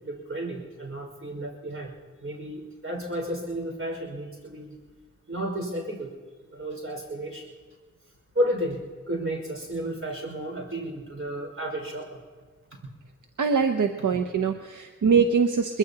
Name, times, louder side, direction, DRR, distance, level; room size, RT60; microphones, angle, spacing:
voice 1, 0.0-1.9 2.2-4.8 5.3-6.1 6.5-7.5 8.3-8.8 9.1-12.2, right 1 dB, 45° right, 1 dB, 5.3 m, -32 dB
voice 2, 13.4-15.8, right 5 dB, 80° right, 6 dB, 0.8 m, -23 dB
23.0 x 21.5 x 2.9 m, 1.4 s
wide cardioid pair, 60°, 30 cm